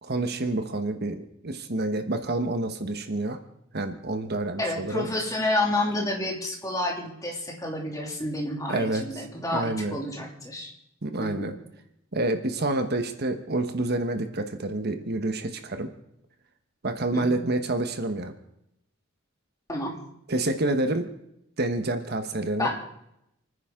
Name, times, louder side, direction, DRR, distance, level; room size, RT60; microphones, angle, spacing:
voice 1, 0.0-3.4 3.7-5.1 8.7-9.3 9.5-10.0 11.0-11.5 12.1-15.9 16.8-18.3 20.3-21.1 21.6-22.7, right 2 dB, 50° right, 7 dB, 1.2 m, -28 dB
voice 2, 4.6-10.7 11.2-11.5 17.1-17.5 19.7-20.0 22.6-22.8, left 1 dB, 15° left, -1 dB, 2.9 m, -29 dB
29.0 x 10.0 x 3.8 m, 0.79 s
head